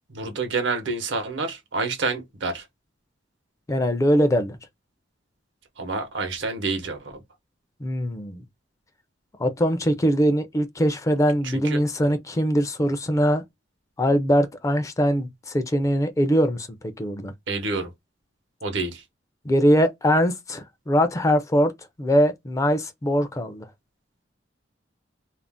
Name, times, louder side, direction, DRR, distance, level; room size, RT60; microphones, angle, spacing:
voice 1, 0.1-2.6 5.8-7.0 11.4-11.8 17.5-17.9 18.6-19.0, right 3 dB, 75° right, 0.8 m, -28 dB
voice 2, 3.7-4.6 7.8-8.4 9.4-13.4 14.0-16.7 17.0-17.3 19.5-21.7 22.0-23.7, equal, 15° left, 0.4 m, -22 dB
2.5 x 2.1 x 3.4 m
head